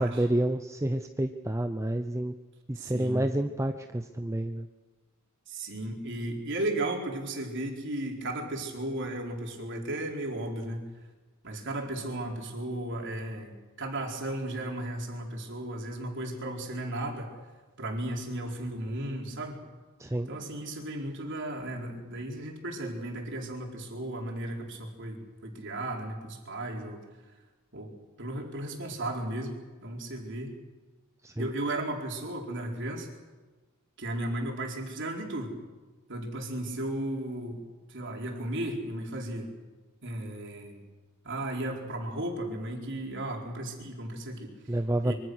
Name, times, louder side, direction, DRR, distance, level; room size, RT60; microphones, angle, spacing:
voice 1, 0.0-2.3 2.7-4.7 20.0-20.3 31.2-31.5 44.7-45.1, right 1 dB, 15° right, 7 dB, 0.7 m, -29 dB
voice 2, 2.8-3.2 5.5-10.8 11.4-17.3 17.8-19.6 20.3-27.0 27.7-27.9 28.2-30.6 31.4-33.1 34.0-35.5 36.1-37.6 37.9-39.5 40.0-40.8 41.2-44.5 45.0-45.1, right 1 dB, 60° right, 1 dB, 4.3 m, -35 dB
25.0 x 24.0 x 6.4 m, 1.3 s
head